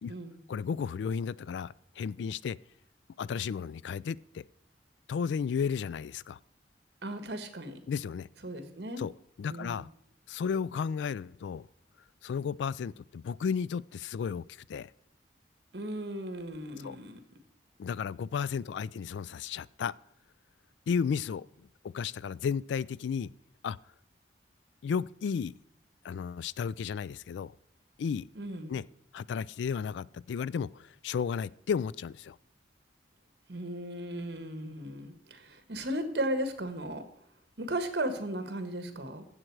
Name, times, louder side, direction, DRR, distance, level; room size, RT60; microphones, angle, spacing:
voice 1, 0.5-2.6 3.2-4.4 5.1-6.4 7.9-8.3 9.0-9.1 9.4-9.9 10.3-11.7 12.2-14.9 16.8-17.0 17.8-19.9 20.9-23.3 23.6-23.8 24.8-25.5 26.0-27.5 28.0-28.3 28.7-28.9 29.1-32.4, left 6 dB, 80° left, 0.3 m, -33 dB
voice 2, 7.0-7.8 8.4-9.0 9.5-9.8 15.7-17.2 28.3-28.7 33.5-37.0 37.6-39.2, right 1 dB, 65° right, 1.4 m, -36 dB
14.5 x 7.5 x 4.7 m
head